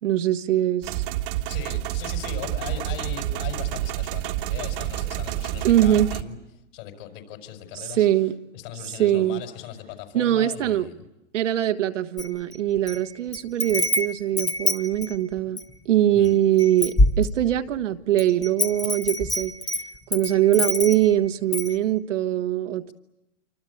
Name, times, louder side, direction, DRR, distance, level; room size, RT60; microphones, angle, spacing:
voice 1, 0.0-1.0 5.6-6.1 7.7-8.4 9.0-9.4 10.1-10.9 11.3-15.6 15.8-19.5 20.1-22.9, right 12 dB, 70° right, 1.5 m, -22 dB
sound 1, 0.8-6.2, right 13 dB, 45° right, 1.6 m, -29 dB
voice 2, 1.5-6.4 6.7-8.1 8.5-11.1 16.1-16.4, left 10 dB, 45° left, 6.0 m, -38 dB
Wind chime, 12.2-13.0 13.3-15.7 16.2-16.3 16.6-17.7 18.2-21.1 21.5-21.7, left 2 dB, 10° left, 1.5 m, -25 dB
27.5 x 25.5 x 8.5 m
hypercardioid pair, 145°, 39 cm